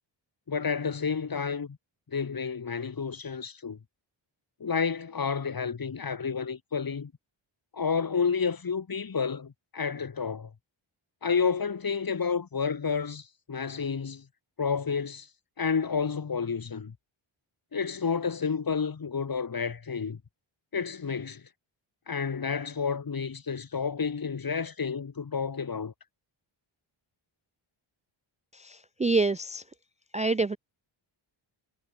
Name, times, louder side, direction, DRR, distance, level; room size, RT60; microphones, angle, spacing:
voice 1, 0.5-1.8 2.1-3.8 4.6-7.1 7.7-10.5 11.2-14.2 14.6-15.3 15.6-16.9 17.7-20.2 20.7-21.4 22.1-25.9, left 5 dB, 45° left, 2.4 m, -30 dB
voice 2, 28.5-29.6 30.1-30.6, right 3 dB, 15° right, 0.4 m, -27 dB
wide cardioid pair, 100°, 49 cm